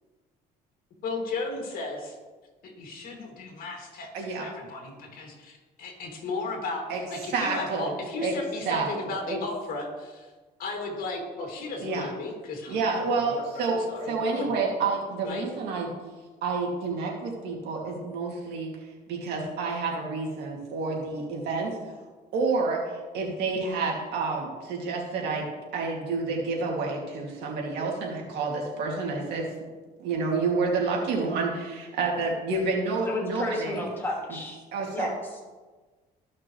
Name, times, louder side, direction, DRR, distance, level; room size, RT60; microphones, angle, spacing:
voice 1, 1.0-2.1 2.6-10.3 10.6-14.6 15.2-15.4, left 3 dB, 60° left, 1 dB, 2.4 m, -35 dB
voice 2, 4.1-4.5 6.9-7.0 7.3-7.9 8.2-8.3 8.7-9.4 11.8-12.1 12.7-15.9 16.4-18.7 19.1-21.8 22.3-22.8 23.1-25.4 25.7-29.5 30.0-33.8 34.7-35.1, right 4 dB, 80° right, -2 dB, 2.5 m, -29 dB
voice 3, 33.0-34.6 34.9-35.1, left 2 dB, 10° left, -3 dB, 2.5 m, -32 dB
14.5 x 5.9 x 3.2 m, 1.3 s
cardioid pair, 110°, 17 cm